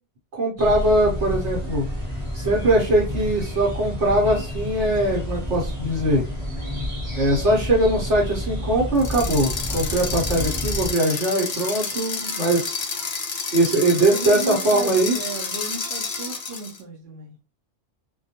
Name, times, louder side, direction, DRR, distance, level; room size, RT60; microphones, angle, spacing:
voice 1, 0.3-1.9 2.3-6.2 7.1-12.7 13.5-15.2, right 1 dB, 70° right, 1.0 m, -21 dB
sound 1, 0.6-10.9, left 1 dB, 30° right, 1.0 m, -30 dB
sound 2, 8.9-16.8, left 4 dB, 55° left, 0.4 m, -30 dB
voice 2, 14.1-17.4, right 3 dB, 55° right, 0.7 m, -33 dB
2.2 x 2.2 x 2.7 m
omnidirectional pair, 1.2 m